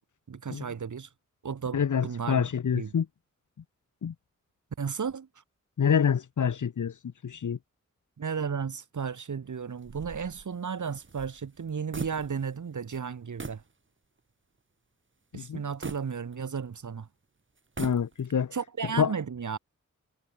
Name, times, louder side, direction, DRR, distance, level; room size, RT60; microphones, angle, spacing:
voice 1, 0.3-1.1 1.4-2.4 2.7-2.9 4.8-5.4 8.2-13.6 15.3-17.1 18.5-19.6, right 6 dB, 80° right, 3.0 m, -34 dB
voice 2, 1.7-3.1 4.0-4.1 5.8-6.9 7.2-7.6 15.3-15.6 17.8-18.6 19.0-19.1, left 7 dB, 80° left, 1.5 m, -26 dB
sound 1, 9.8-12.6 12.9-13.1 13.4-13.7 14.2-14.3 15.8-16.8 17.6-18.4, right 4 dB, 40° right, 5.1 m, -41 dB
wide cardioid pair, 130°, 30 cm